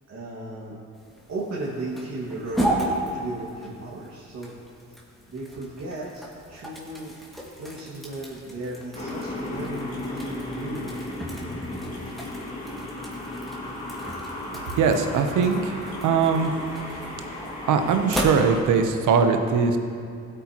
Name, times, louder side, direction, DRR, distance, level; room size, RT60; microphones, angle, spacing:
voice 1, 0.1-0.8 1.3-4.5 5.3-6.2 6.5-7.2 7.6-11.1, right 2 dB, 55° right, -6 dB, 2.1 m, -35 dB
sound 1, 0.9-19.0, right 1 dB, ahead, 2.0 m, -35 dB
sound 2, 8.9-18.6, left 1 dB, 25° left, 2.5 m, -35 dB
voice 2, 14.8-16.5 17.7-19.8, right 5 dB, 85° right, 6 dB, 0.9 m, -21 dB
15.5 x 8.8 x 3.0 m, 2.4 s
cardioid pair, 90°, 30 cm